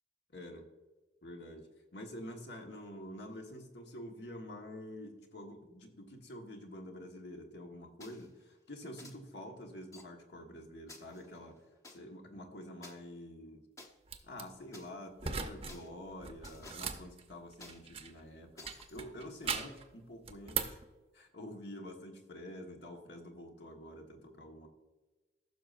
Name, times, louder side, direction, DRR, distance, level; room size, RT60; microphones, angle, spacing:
voice 1, 0.3-0.6 1.2-11.6 11.9-13.6 14.2-20.8 21.1-24.7, left 1 dB, 65° left, 2 dB, 1.4 m, -48 dB
sound 1, 8.0-8.3 9.0-9.1 9.9-10.0 10.9-12.0 12.8-12.9 13.8-13.9 14.7-14.9 15.7-15.9 16.4-16.9 17.6-17.8 18.6-19.0, left 2 dB, 15° left, 0.9 m, -53 dB
sound 2, 14.1-14.4 15.2-15.8 16.1-18.2 18.6-19.8 20.2-20.8, right 6 dB, 30° right, 0.7 m, -39 dB
15.0 x 6.4 x 2.5 m, 1.2 s
head